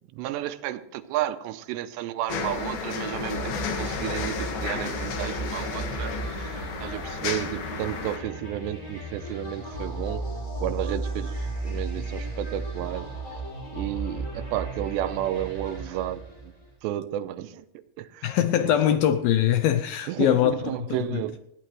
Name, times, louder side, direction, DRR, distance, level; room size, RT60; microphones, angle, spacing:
voice 1, 0.1-10.2 10.6-13.4 13.7-16.5 16.8-17.7 18.0-18.3 18.6-18.8 20.1-21.4, right 13 dB, 90° right, 2.9 m, -32 dB
sound 1, 2.3-8.2, left 5 dB, 65° left, 3.5 m, -32 dB
sound 2, 3.0-16.7, right 2 dB, 20° left, 6.1 m, -35 dB
voice 2, 18.2-20.5, left 11 dB, 80° left, 2.2 m, -22 dB
20.0 x 14.5 x 3.2 m
omnidirectional pair, 4.9 m